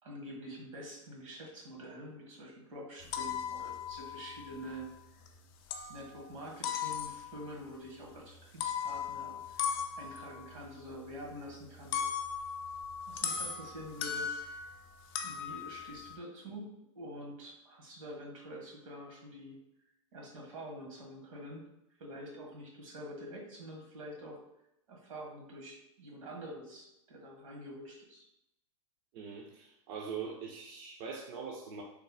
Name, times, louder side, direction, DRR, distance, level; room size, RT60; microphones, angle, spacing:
voice 1, 0.0-4.9 5.1-5.3 5.9-9.6 10.0-12.1 13.1-14.7 15.2-19.6 20.1-21.7 22.0-24.4 24.9-28.2, equal, 80° right, -1 dB, 1.3 m, -47 dB
sound 1, 3.0-5.4 5.7-6.2 6.6-7.5 8.4-14.8 15.1-16.1, left 7 dB, 50° left, 0.4 m, -38 dB
voice 2, 29.1-31.8, right 6 dB, 50° right, 1 dB, 0.5 m, -42 dB
3.2 x 2.0 x 3.8 m, 0.85 s
hypercardioid pair, 125°, 17 cm